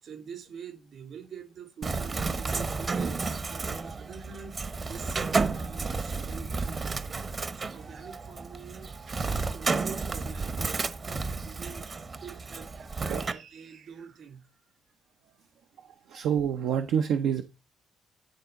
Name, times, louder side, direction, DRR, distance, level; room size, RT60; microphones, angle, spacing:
voice 1, 0.0-7.3 7.5-10.9 11.4-14.6 15.0-15.4, right 6 dB, 65° right, 3.3 m, -46 dB
Bird, 1.8-13.3, right 4 dB, 35° right, 0.9 m, -32 dB
voice 2, 16.1-17.4, right 8 dB, 80° right, 0.7 m, -27 dB
11.0 x 3.8 x 5.7 m
cardioid pair, 90°, 0 cm